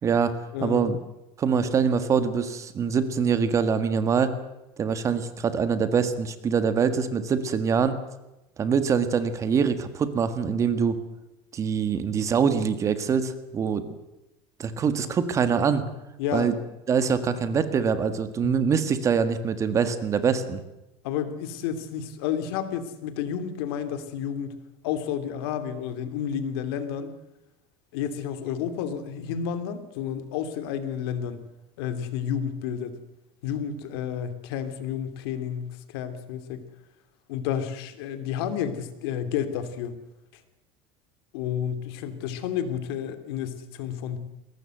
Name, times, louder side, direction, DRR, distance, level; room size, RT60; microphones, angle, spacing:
voice 1, 0.0-0.3 0.6-1.0 1.4-4.3 4.8-8.0 8.6-11.0 11.5-13.9 14.6-15.8 16.3-16.5 16.9-20.6, right 6 dB, 25° right, 11 dB, 1.8 m, -24 dB
voice 2, 0.5-1.0 1.6-1.7 16.2-16.5 21.0-24.6 24.8-27.1 27.9-31.4 31.8-33.0 33.4-36.6 37.3-39.9 41.3-44.2, left 8 dB, 80° left, 10 dB, 3.0 m, -31 dB
22.0 x 18.5 x 7.8 m, 0.95 s
cardioid pair, 160°, 13 cm